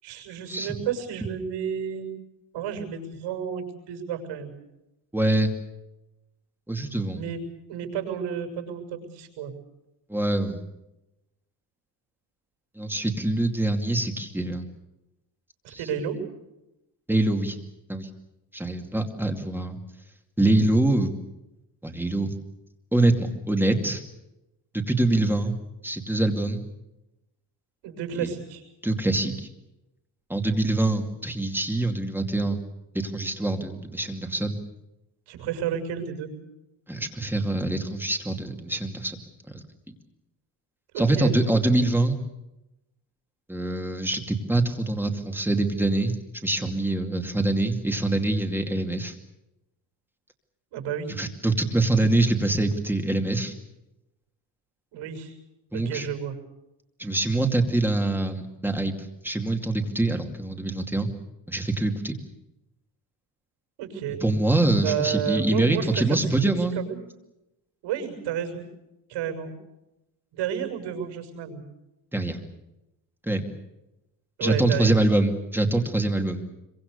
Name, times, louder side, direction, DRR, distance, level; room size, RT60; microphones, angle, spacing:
voice 1, 0.0-2.1 2.5-4.5 7.1-7.4 7.7-9.5 15.6-16.2 27.8-28.6 35.3-36.3 40.9-41.3 50.7-51.1 54.9-55.3 55.7-56.3 63.8-64.2 64.8-66.0 66.3-67.0 67.8-68.6 69.1-69.5 70.3-71.6 74.4-75.0, right 8 dB, 80° right, 4 dB, 6.8 m, -31 dB
voice 2, 5.1-5.5 6.7-7.2 10.1-10.6 12.8-14.6 15.7-15.8 17.1-17.6 17.9-18.1 18.5-19.8 20.4-21.1 21.8-22.3 22.9-24.0 24.9-25.5 25.8-26.7 28.2-28.3 28.8-29.5 30.3-32.6 32.9-34.6 36.9-39.2 39.5-39.6 41.0-42.2 43.5-46.2 46.4-49.1 51.2-53.5 55.7-56.1 57.0-58.9 59.2-61.1 61.5-62.1 64.2-66.8 72.1-72.4 73.2-73.5 74.4-76.4, right 2 dB, 5° right, 4 dB, 2.5 m, -24 dB
25.5 x 24.0 x 6.8 m, 0.93 s
cardioid pair, 150°, 45 cm